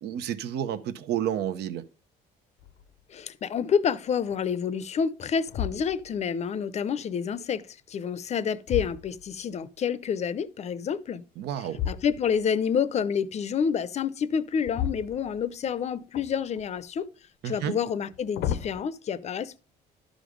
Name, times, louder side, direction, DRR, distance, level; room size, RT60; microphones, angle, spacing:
voice 1, 0.0-1.8 11.4-11.8 17.4-17.8, right 10 dB, 75° right, 0.8 m, -30 dB
sound 1, 2.6-3.0 3.6-3.7 4.3-4.9 5.4-6.3 8.0-9.6 11.7-12.5 14.6-15.7 16.1-16.9 17.9-18.8, left 9 dB, 75° left, 0.7 m, -35 dB
voice 2, 3.1-11.2 11.8-17.1 17.4-19.6, left 7 dB, 40° left, 0.6 m, -28 dB
12.0 x 5.2 x 5.0 m
cardioid pair, 110°, 17 cm